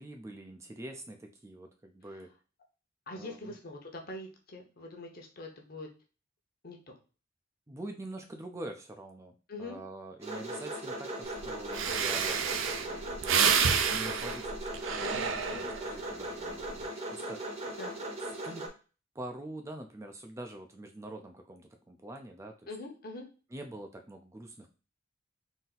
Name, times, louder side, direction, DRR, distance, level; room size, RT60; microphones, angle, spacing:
voice 1, 0.0-2.3 3.1-3.6 7.7-9.3 9.6-13.2 13.9-17.7 18.2-18.7 19.1-22.7 23.5-24.7, right 1 dB, 15° right, 4 dB, 0.4 m, -45 dB
voice 2, 3.1-5.9 6.6-6.9 9.5-9.8 15.0-15.7 17.8-18.0 22.7-23.3, left 2 dB, 50° left, 2 dB, 1.0 m, -43 dB
sound 1, 10.2-18.7, right 1 dB, 30° right, 0.9 m, -39 dB
Breathing, 11.4-11.5 11.7-16.0 16.5-16.8, right 6 dB, 75° right, 0.5 m, -29 dB
4.1 x 2.6 x 3.9 m, 0.34 s
head